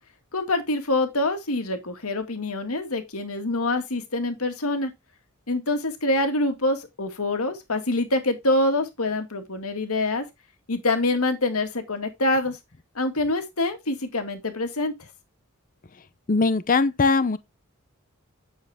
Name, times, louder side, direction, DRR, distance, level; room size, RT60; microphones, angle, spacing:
voice 1, 0.3-4.9 5.5-10.2 10.7-12.6 13.0-14.9, left 2 dB, 85° left, 2.1 m, -25 dB
voice 2, 16.3-17.4, left 4 dB, 40° left, 0.7 m, -20 dB
10.0 x 7.2 x 3.5 m
head